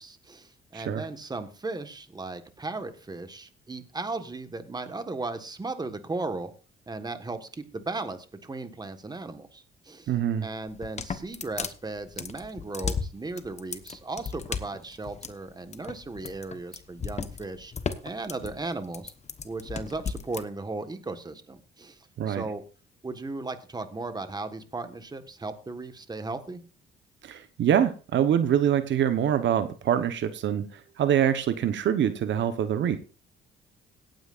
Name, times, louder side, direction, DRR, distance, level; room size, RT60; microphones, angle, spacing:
voice 1, 0.0-6.5 6.9-10.1 10.4-17.7 18.0-19.1 19.4-22.6 23.0-26.6, right 3 dB, 20° right, 9 dB, 1.5 m, -36 dB
voice 2, 0.7-1.0 10.1-10.5 22.2-22.4 27.2-33.0, right 9 dB, 70° right, 11 dB, 1.0 m, -25 dB
sound 1, 10.7-20.4, left 5 dB, 35° left, 1.1 m, -35 dB
17.5 x 9.3 x 2.5 m, 0.34 s
cardioid pair, 90°, 20 cm